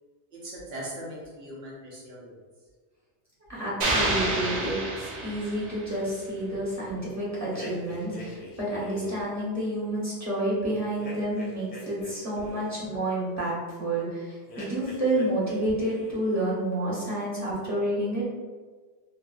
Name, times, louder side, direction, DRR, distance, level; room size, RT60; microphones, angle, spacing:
voice 1, 0.3-2.3, right 1 dB, 70° right, -5 dB, 1.0 m, -40 dB
voice 2, 3.5-18.2, right 1 dB, 15° right, -9 dB, 0.9 m, -29 dB
sound 1, 3.8-6.0, right 2 dB, 50° right, 0.5 m, -28 dB
sound 2, 7.5-9.4 11.0-12.8 14.5-15.6 15.8-16.4, left 1 dB, 50° left, 0.6 m, -43 dB
2.7 x 2.7 x 2.3 m, 1.4 s
omnidirectional pair, 1.1 m